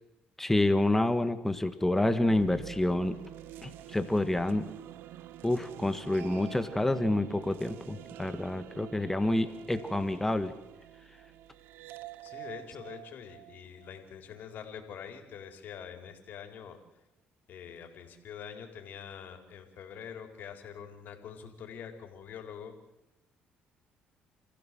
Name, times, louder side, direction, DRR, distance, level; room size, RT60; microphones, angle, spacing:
voice 1, 0.4-3.1 3.6-4.7 5.4-10.5, left 1 dB, 10° left, 10 dB, 1.6 m, -28 dB
sound 1, 2.2-14.4, right 13 dB, 80° right, 0.9 m, -47 dB
voice 2, 12.2-16.8 17.5-22.7, left 8 dB, 60° left, 5 dB, 4.2 m, -45 dB
29.0 x 15.5 x 7.7 m, 0.96 s
cardioid pair, 85°, 3 cm